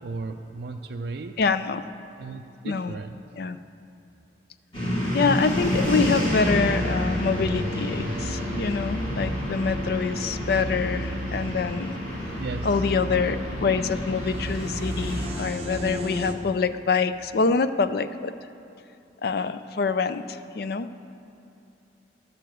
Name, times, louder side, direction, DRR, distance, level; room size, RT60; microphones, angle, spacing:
voice 1, 0.0-1.4 2.2-3.2 12.4-12.8, right 3 dB, 65° right, 3 dB, 0.4 m, -35 dB
voice 2, 1.4-1.8 2.7-3.0 3.4-3.6 5.1-11.9 12.6-18.3 19.2-20.9, left 5 dB, 55° left, 12 dB, 0.4 m, -25 dB
sound 1, 4.7-15.3, left 1 dB, 30° left, 2.9 m, -30 dB
sound 2, 5.6-16.3, equal, 35° right, 1.0 m, -33 dB
11.5 x 6.6 x 7.6 m, 2.8 s
head